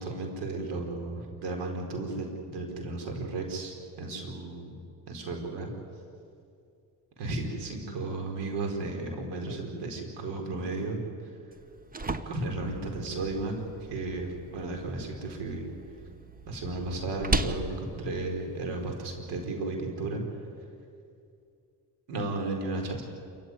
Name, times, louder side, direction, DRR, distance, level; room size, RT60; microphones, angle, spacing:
voice 1, 0.0-4.7 5.1-5.7 7.2-11.0 12.3-13.5 13.9-15.7 16.5-20.2 22.1-23.0, right 2 dB, 85° right, 3 dB, 4.7 m, -34 dB
sound 1, 11.5-19.5, right 2 dB, 20° right, 1.2 m, -37 dB
27.5 x 15.0 x 9.8 m, 2.5 s
cardioid pair, 95°, 40 cm